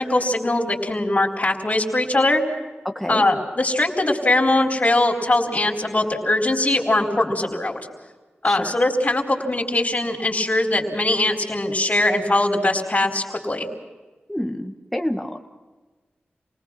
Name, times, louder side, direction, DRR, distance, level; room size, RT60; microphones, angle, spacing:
voice 1, 0.0-2.4 3.1-7.8 8.4-13.7, left 2 dB, 40° left, -1 dB, 4.1 m, -21 dB
voice 2, 2.8-3.2 8.5-8.7 14.3-15.4, left 1 dB, ahead, 3 dB, 1.7 m, -28 dB
28.5 x 19.5 x 6.0 m, 1.3 s
cardioid pair, 55°, 4 cm